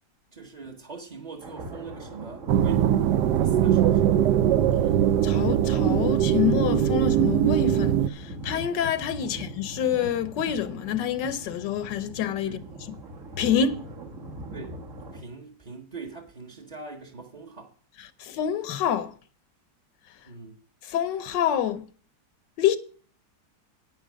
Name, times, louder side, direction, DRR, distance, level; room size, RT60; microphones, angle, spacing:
voice 1, 0.3-3.0 3.3-4.4 9.3-9.4 12.4-12.7 14.5-14.8 15.1-17.7 20.3-20.6, right 4 dB, 30° right, 1.0 m, -42 dB
sound 1, 1.4-15.2, right 1 dB, 50° right, 1.7 m, -40 dB
sound 2, 2.5-8.1, right 10 dB, 75° right, 1.2 m, -21 dB
voice 2, 5.2-12.6 13.4-13.8 18.2-19.1 20.9-21.8 22.6-22.8, left 8 dB, 90° left, 1.5 m, -27 dB
9.1 x 7.9 x 6.2 m
omnidirectional pair, 1.9 m